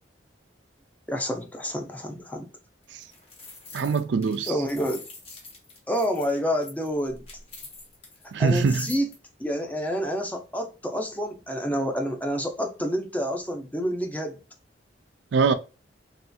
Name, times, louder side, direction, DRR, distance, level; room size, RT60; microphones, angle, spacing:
voice 1, 1.1-2.5 4.5-5.0 5.9-7.2 8.4-9.1 9.4-14.4, equal, 10° left, 0.5 m, -28 dB
sound 1, 2.8-9.2, left 2 dB, 35° left, 1.0 m, -45 dB
voice 2, 3.7-4.5 8.3-8.9 15.3-15.5, right 5 dB, 75° right, 0.4 m, -23 dB
3.1 x 2.8 x 2.2 m
head